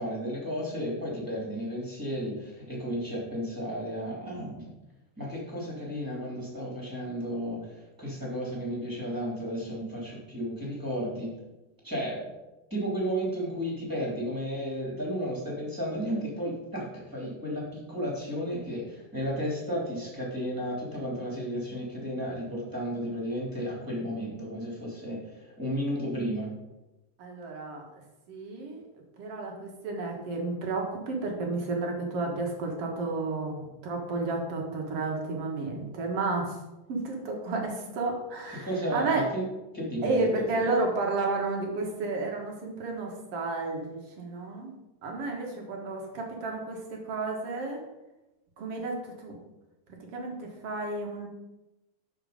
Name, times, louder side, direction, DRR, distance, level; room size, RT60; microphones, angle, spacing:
voice 1, 0.0-4.7 5.2-11.3 11.8-12.3 12.7-26.5 38.6-39.1 39.3-39.4 39.7-40.7, equal, 5° right, -4 dB, 2.3 m, -33 dB
voice 2, 27.2-27.8 28.3-28.8 29.2-36.6 36.9-39.2 40.0-44.7 45.0-47.8 48.6-49.4 50.1-51.3, right 3 dB, 50° right, 1 dB, 2.0 m, -32 dB
12.0 x 4.5 x 5.1 m, 1.0 s
omnidirectional pair, 4.1 m